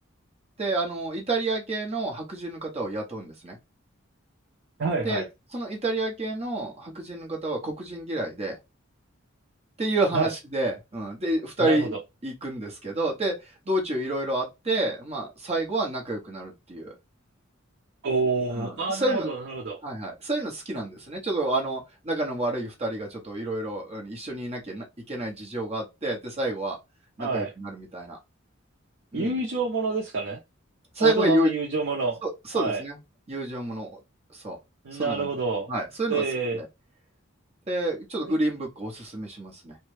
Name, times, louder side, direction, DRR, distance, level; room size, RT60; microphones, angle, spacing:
voice 1, 0.6-3.6 5.0-5.2 5.5-8.6 9.8-11.9 12.2-16.9 18.5-19.3 19.8-26.8 27.2-28.2 29.1-29.4 30.9-31.5 32.2-33.0 33.3-34.0 34.3-34.6 34.9-35.4 35.7-36.2 36.5-36.7 37.7-39.8, right 2 dB, 30° right, 1.0 m, -29 dB
voice 2, 4.8-5.3 10.1-10.3 11.6-12.0 18.0-19.8 27.2-27.5 29.1-30.4 31.0-32.2 32.5-32.8 34.8-35.7 36.1-36.6 38.3-38.4, right 4 dB, 60° right, 0.6 m, -27 dB
3.2 x 2.2 x 3.2 m
head